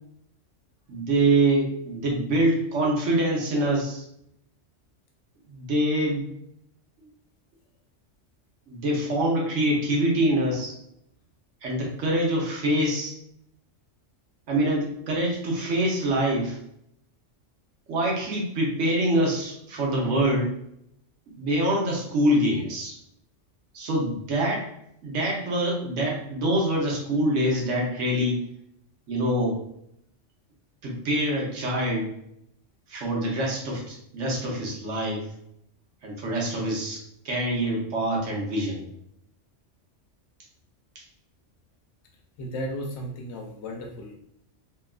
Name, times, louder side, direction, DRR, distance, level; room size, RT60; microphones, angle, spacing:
voice 1, 0.9-4.0 5.5-6.2 8.7-10.7 11.6-13.1 14.5-16.6 17.9-20.5 21.4-22.9 23.7-24.7 25.0-28.5 29.1-29.6 30.8-32.1 32.9-35.3 36.0-38.8 40.9-41.0, right 1 dB, 80° right, -2 dB, 1.1 m, -25 dB
voice 2, 42.4-44.1, equal, 70° left, 0 dB, 0.8 m, -34 dB
2.8 x 2.3 x 2.3 m, 0.75 s
omnidirectional pair, 1.2 m